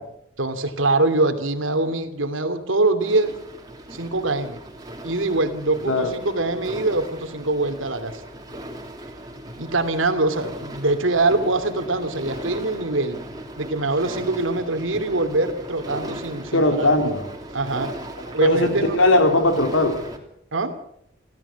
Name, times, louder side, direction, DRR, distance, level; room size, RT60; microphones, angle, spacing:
voice 1, 0.4-3.3 3.9-4.6 5.0-8.2 9.6-13.2 13.6-16.9 17.5-17.9 18.3-19.0 20.5-20.8, right 2 dB, 85° right, 8 dB, 2.7 m, -23 dB
sound 1, 3.0-20.2, right 1 dB, 20° right, 3.0 m, -38 dB
voice 2, 16.5-17.3 18.4-20.0, left 1 dB, 85° left, 5 dB, 4.0 m, -19 dB
26.0 x 16.0 x 7.1 m, 0.76 s
head